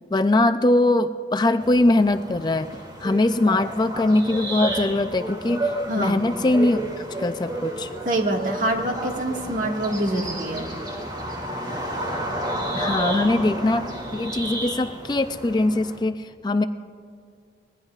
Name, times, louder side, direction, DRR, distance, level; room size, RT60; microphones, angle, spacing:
voice 1, 0.1-2.7 3.0-6.8 7.2-7.9 12.7-16.6, left 2 dB, 25° left, 8 dB, 0.4 m, -21 dB
sound 1, 1.6-16.0, right 1 dB, 25° right, 2.4 m, -31 dB
voice 2, 5.9-6.2 8.1-10.7, right 1 dB, 50° right, 1 dB, 1.8 m, -25 dB
25.0 x 20.0 x 2.4 m, 2.1 s
head